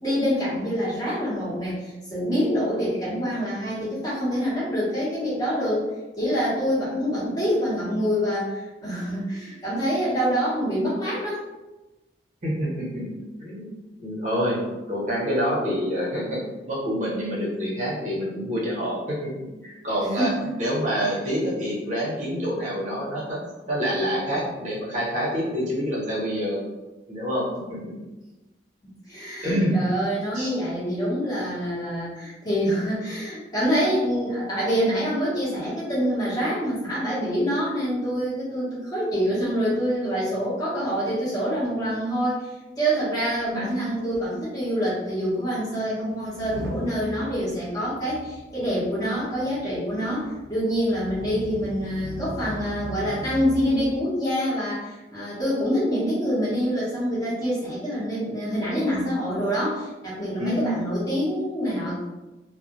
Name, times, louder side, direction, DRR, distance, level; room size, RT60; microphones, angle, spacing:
voice 1, 0.0-5.8 6.2-11.4 20.1-20.5 29.1-62.1, equal, 20° left, -10 dB, 0.9 m, -26 dB
voice 2, 12.4-13.0 13.4-13.7 14.0-16.4 16.7-20.3 20.6-23.4 23.7-26.6 27.1-27.8 29.4-29.8 30.3-30.5 43.5-43.7 60.4-60.7, equal, 40° right, -6 dB, 0.8 m, -27 dB
Motor vehicle (road) / Engine starting / Accelerating revving vroom, 43.7-43.8 44.0-44.2 44.9-45.0 46.2-54.0, right 2 dB, 85° right, 0.3 m, -39 dB
2.3 x 2.0 x 2.8 m, 1.1 s
head